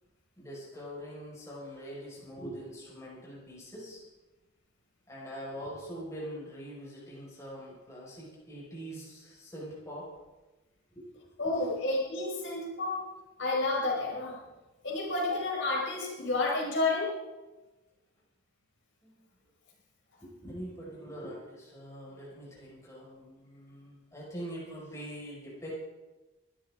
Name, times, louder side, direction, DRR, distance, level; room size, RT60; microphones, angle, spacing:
voice 1, 0.4-4.0 5.1-10.1 10.9-11.0 11.5-11.6 19.0-19.1 20.2-25.7, equal, 15° left, -6 dB, 5.1 m, -43 dB
voice 2, 11.4-13.0 13.4-14.4 14.8-17.2, left 2 dB, 60° left, -2 dB, 4.9 m, -30 dB
23.0 x 12.5 x 3.7 m, 1.1 s
head